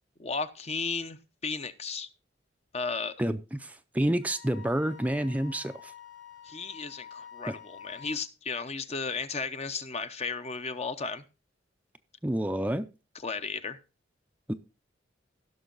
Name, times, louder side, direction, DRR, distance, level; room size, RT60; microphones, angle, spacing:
voice 1, 0.2-1.2 1.4-2.1 2.7-3.1 6.4-11.2 13.2-13.8, left 4 dB, 35° left, 0.8 m, -34 dB
voice 2, 3.2-5.9 7.5-7.6 12.2-12.9 14.5-14.6, right 1 dB, 10° right, 0.5 m, -29 dB
Wind instrument woodwind instrument, 4.2-8.2, left 8 dB, 85° left, 2.1 m, -48 dB
16.0 x 6.3 x 3.9 m
head